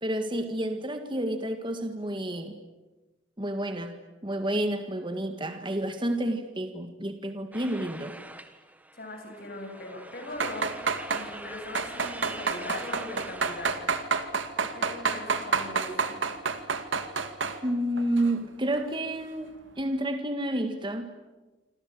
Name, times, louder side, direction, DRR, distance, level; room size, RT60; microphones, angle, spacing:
voice 1, 0.0-2.6 3.4-4.0 4.2-8.1 17.6-21.1, right 1 dB, 25° right, 7 dB, 1.8 m, -30 dB
sound 1, 7.5-13.8, right 1 dB, 10° right, 1.6 m, -44 dB
voice 2, 8.9-10.7 11.1-13.9 14.7-16.2, left 2 dB, 50° left, 3 dB, 7.5 m, -40 dB
sound 2, 10.3-11.3 11.7-17.6 18.0-18.3 18.7-18.8, right 5 dB, 75° right, 2.2 m, -29 dB
27.5 x 26.5 x 7.9 m, 1.2 s
head